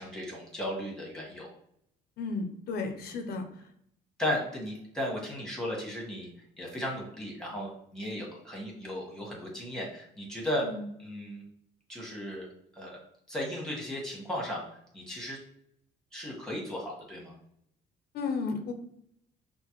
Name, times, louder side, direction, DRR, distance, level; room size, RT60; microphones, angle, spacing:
voice 1, 0.0-1.5 3.0-3.1 4.2-6.3 6.6-10.7 11.0-11.4 11.9-12.5 12.7-13.0 13.3-14.7 14.9-15.4 16.1-17.4, left 1 dB, 5° left, -3 dB, 1.3 m, -35 dB
voice 2, 2.2-3.5 10.6-10.8 18.1-18.7, left 4 dB, 70° left, 5 dB, 0.7 m, -33 dB
5.7 x 2.1 x 3.0 m, 0.71 s
cardioid pair, 110°, 17 cm